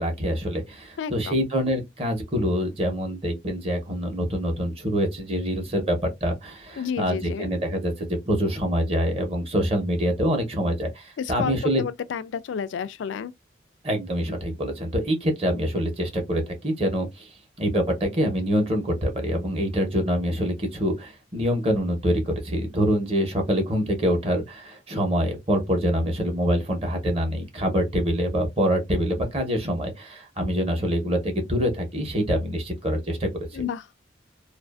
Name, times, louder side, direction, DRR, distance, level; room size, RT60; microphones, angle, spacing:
voice 1, 0.0-11.8 13.8-17.3 17.6-33.6, equal, 35° right, 0.9 m, -25 dB
voice 2, 1.0-1.5 6.8-7.5 11.2-13.3 33.5-33.9, left 7 dB, 90° left, 0.3 m, -31 dB
2.5 x 2.4 x 2.3 m
head